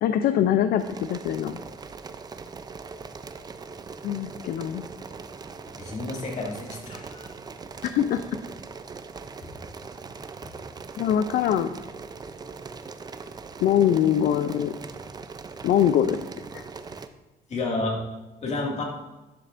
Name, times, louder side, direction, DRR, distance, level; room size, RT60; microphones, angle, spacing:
voice 1, 0.0-1.6 4.0-4.8 7.9-8.2 11.0-11.7 13.6-14.7 15.6-16.2 16.5-16.6, left 10 dB, 60° left, 10 dB, 0.4 m, -23 dB
sound 1, 0.8-17.1, right 4 dB, 25° right, 0.5 m, -41 dB
voice 2, 5.8-7.3 10.4-10.5 17.5-18.0 18.4-18.8, left 2 dB, 40° left, 0 dB, 2.1 m, -30 dB
11.5 x 6.6 x 2.6 m, 1.1 s
cardioid pair, 110°, 17 cm